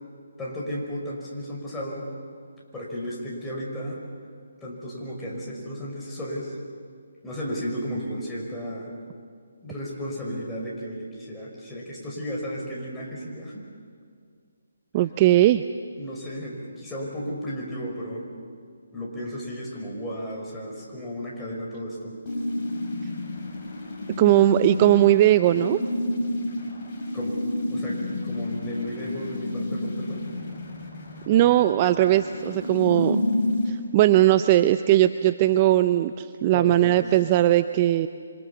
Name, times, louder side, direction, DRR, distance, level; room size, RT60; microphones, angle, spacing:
voice 1, 0.4-2.1 2.7-4.0 4.6-6.6 7.2-8.9 9.6-13.6 15.9-18.2 18.9-22.2 27.1-27.4 27.7-30.3 36.5-37.0, equal, 10° left, -4 dB, 5.5 m, -34 dB
voice 2, 14.9-15.6 24.2-25.8 31.3-33.2 33.7-38.1, right 14 dB, 30° right, 11 dB, 0.6 m, -19 dB
sound 1, 22.3-33.7, left 2 dB, 35° left, 6.5 m, -30 dB
27.0 x 25.5 x 7.1 m, 2.1 s
hypercardioid pair, 155°, 0 cm